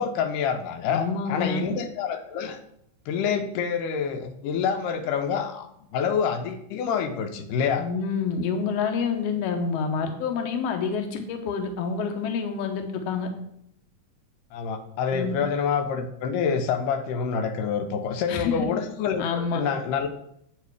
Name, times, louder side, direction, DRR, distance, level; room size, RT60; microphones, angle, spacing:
voice 1, 0.0-2.6 3.1-5.7 5.9-7.9 14.5-20.1, left 6 dB, 85° left, 7 dB, 2.2 m, -27 dB
voice 2, 0.9-1.6 7.8-13.3 15.1-15.3 18.3-18.7 19.2-19.6, left 5 dB, 70° left, 5 dB, 1.7 m, -28 dB
8.3 x 4.5 x 4.7 m, 0.73 s
omnidirectional pair, 3.7 m